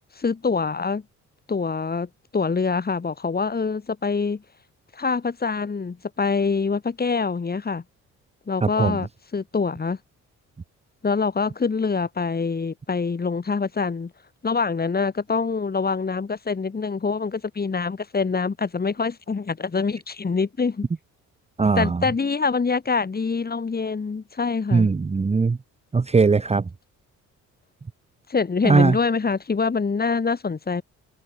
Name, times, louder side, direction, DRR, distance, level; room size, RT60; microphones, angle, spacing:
voice 1, 0.2-1.0 1.5-4.4 4.9-7.8 8.5-10.0 11.0-14.1 14.4-20.9 21.8-24.9 28.3-30.8, left 4 dB, 30° left, 4.8 m, -25 dB
voice 2, 8.6-9.0 21.6-22.0 24.7-25.6 25.9-26.6 28.6-29.0, right 4 dB, 20° right, 1.0 m, -19 dB
cardioid pair, 90°, 30 cm